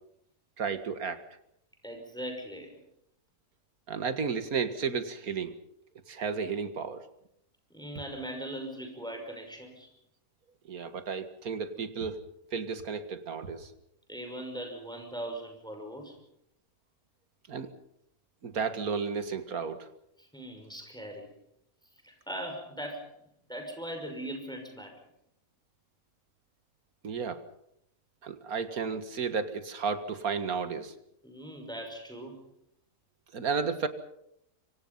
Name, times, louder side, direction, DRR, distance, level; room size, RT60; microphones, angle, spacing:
voice 1, 0.6-1.2 3.9-5.5 6.1-7.0 10.7-12.2 12.5-13.7 17.5-17.7 18.4-19.9 27.0-27.4 28.2-30.9 33.3-33.9, right 5 dB, 80° right, 10 dB, 2.2 m, -33 dB
voice 2, 1.8-2.8 7.7-9.9 14.1-16.2 20.2-21.3 22.0-23.1 23.5-25.0 31.2-32.4, right 1 dB, 5° left, 3 dB, 5.9 m, -40 dB
25.5 x 24.5 x 5.6 m, 0.73 s
omnidirectional pair, 1.5 m